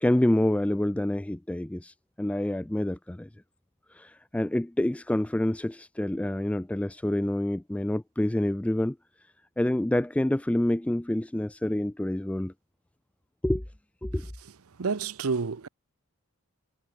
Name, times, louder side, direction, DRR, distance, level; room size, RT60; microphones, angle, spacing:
voice 1, 0.0-3.3 3.9-9.0 9.6-12.5 13.4-13.6 14.0-14.3, left 1 dB, 5° left, 0.3 m, -27 dB
voice 2, 14.8-15.7, right 5 dB, 70° right, 0.7 m, -29 dB
head